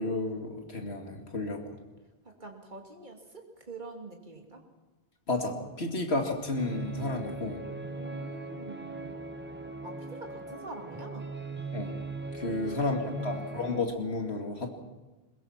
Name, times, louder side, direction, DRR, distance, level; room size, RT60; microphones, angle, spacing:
voice 1, 0.0-1.6 5.3-7.6 11.7-11.9 12.3-14.7, left 2 dB, 80° left, 3 dB, 2.7 m, -32 dB
voice 2, 2.2-4.6 7.9-9.2 9.8-11.3 12.4-13.5, right 3 dB, 50° right, 2 dB, 3.0 m, -45 dB
sound 1, 6.6-13.8, right 3 dB, 10° right, 0.9 m, -39 dB
22.0 x 21.0 x 5.9 m, 1.1 s
omnidirectional pair, 1.1 m